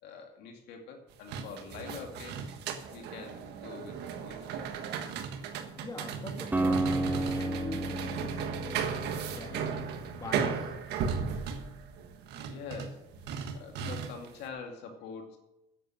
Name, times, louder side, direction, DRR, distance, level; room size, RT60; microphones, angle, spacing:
voice 1, 0.0-2.5 2.9-4.9 11.0-11.1 12.4-13.1 13.5-15.4, left 5 dB, 85° left, 3 dB, 2.4 m, -45 dB
sound 1, 1.1-14.4, right 6 dB, 80° right, 1.4 m, -36 dB
voice 2, 5.8-10.7, left 3 dB, 20° left, 3 dB, 2.0 m, -43 dB
Acoustic guitar, 6.5-10.6, right 1 dB, 10° right, 1.4 m, -33 dB
10.0 x 8.0 x 7.6 m, 0.93 s
cardioid pair, 110°, 17 cm